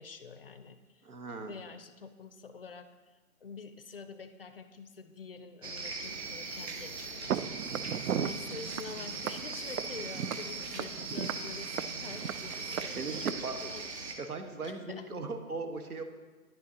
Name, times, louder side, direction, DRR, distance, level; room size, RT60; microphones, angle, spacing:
voice 1, 0.0-1.1 1.4-7.8 8.1-13.9 14.6-15.1, left 5 dB, 45° left, 10 dB, 0.5 m, -47 dB
voice 2, 1.0-1.5 11.1-11.2 13.0-13.6 14.2-16.0, right 3 dB, 90° right, 6 dB, 1.4 m, -38 dB
sound 1, 5.6-14.1, right 3 dB, 50° right, 1.2 m, -40 dB
Walk footsteps, 7.3-13.3, right 9 dB, 70° right, 0.5 m, -37 dB
10.5 x 9.1 x 2.8 m, 1.3 s
hypercardioid pair, 155°, 43 cm